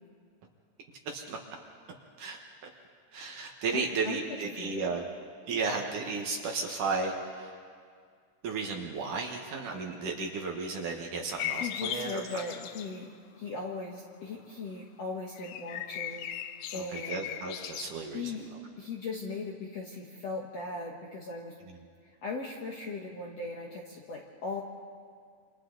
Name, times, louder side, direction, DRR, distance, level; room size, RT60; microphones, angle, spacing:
voice 1, 1.1-1.4 2.2-2.4 3.1-5.0 5.5-7.6 8.4-12.4 16.7-18.4 21.7-21.8, right 4 dB, 60° right, 1 dB, 2.6 m, -34 dB
voice 2, 3.7-4.2 4.6-4.9 11.6-13.1 13.4-17.3 18.1-18.5 18.8-21.5 22.2-24.6, left 3 dB, 60° left, -1 dB, 1.8 m, -38 dB
sound 1, 11.4-13.0 15.3-17.8, left 10 dB, 80° left, 1.9 m, -38 dB
28.0 x 27.5 x 4.0 m, 2.1 s
omnidirectional pair, 4.8 m